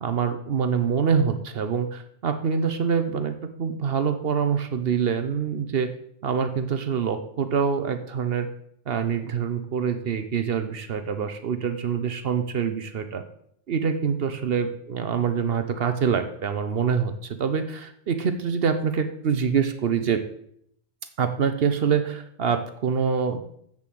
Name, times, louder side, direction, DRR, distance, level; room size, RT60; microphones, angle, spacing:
voice 1, 0.0-5.9 6.2-8.5 8.9-13.2 13.7-20.2 21.2-23.4, right 6 dB, 70° right, 9 dB, 1.0 m, -25 dB
7.8 x 7.1 x 7.6 m, 0.70 s
omnidirectional pair, 1.1 m